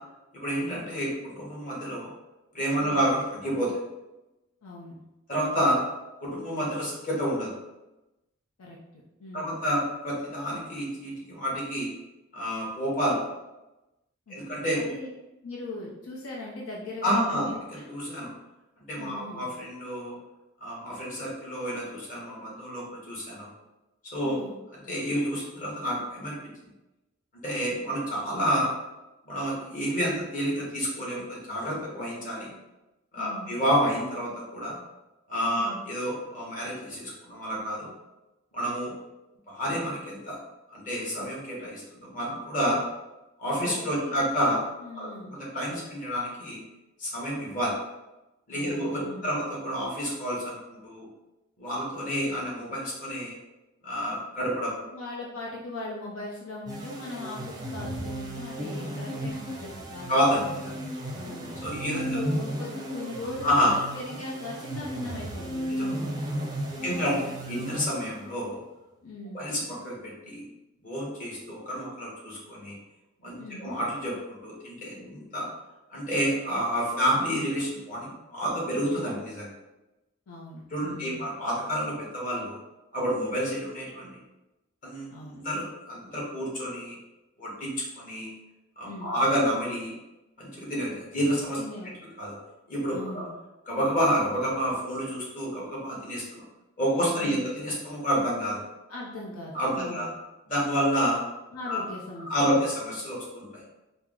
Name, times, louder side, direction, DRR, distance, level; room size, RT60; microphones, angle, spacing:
voice 1, 0.3-2.1 2.5-3.8 5.3-5.8 6.2-7.5 9.3-11.9 12.3-13.2 14.3-14.8 17.0-18.3 18.9-20.2 20.6-23.5 24.1-24.4 24.8-26.4 27.4-28.7 29.2-32.5 33.1-34.8 35.3-37.9 38.5-38.9 39.5-40.4 40.7-42.8 43.4-44.6 44.9-45.1 45.4-46.6 47.0-47.7 48.5-51.1 51.6-53.3 53.8-54.8 60.1-60.8 61.6-62.2 63.4-63.7 65.7-65.9 66.8-68.6 69.3-70.5 70.8-72.8 73.2-75.5 75.9-79.5 80.7-82.6 82.9-84.2 84.8-87.0 87.4-88.3 88.8-89.9 90.4-91.6 92.2-92.3 92.7-93.3 93.7-96.4 96.8-98.6 99.5-100.1 100.5-101.2 101.7-101.8 102.3-103.6, equal, 40° left, -5 dB, 1.3 m, -29 dB
voice 2, 4.6-5.0 8.6-9.6 14.3-15.1 15.4-17.8 19.0-19.4 24.2-24.6 33.2-33.5 35.5-35.8 43.6-44.2 44.8-45.4 48.5-49.4 54.9-60.3 61.1-61.5 61.9-66.1 66.8-67.1 69.0-69.4 73.4-73.7 80.3-81.4 85.1-85.4 88.8-89.2 91.6-92.0 92.9-93.3 97.1-97.4 98.9-100.1 101.5-102.6, left 2 dB, 90° left, -3 dB, 0.6 m, -40 dB
sound 1, 56.7-68.4, right 1 dB, 20° right, 0.5 m, -34 dB
4.4 x 2.0 x 3.6 m, 1.0 s
head